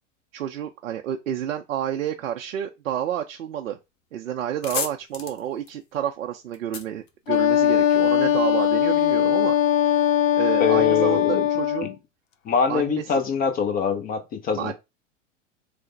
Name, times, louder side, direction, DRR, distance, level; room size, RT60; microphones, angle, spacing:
voice 1, 0.3-3.8 4.1-9.6 9.8-10.1 10.3-11.9 12.7-13.2 14.5-14.7, right 10 dB, 85° right, 0.5 m, -30 dB
plastic tape, 3.9-4.0 4.3-7.9, left 6 dB, 50° left, 0.9 m, -35 dB
Wind instrument woodwind instrument, 7.3-11.9, left 10 dB, 80° left, 0.6 m, -20 dB
voice 2, 10.6-11.5 12.5-14.7, left 6 dB, 25° left, 0.6 m, -23 dB
3.2 x 2.0 x 3.9 m
hypercardioid pair, 100°, 39 cm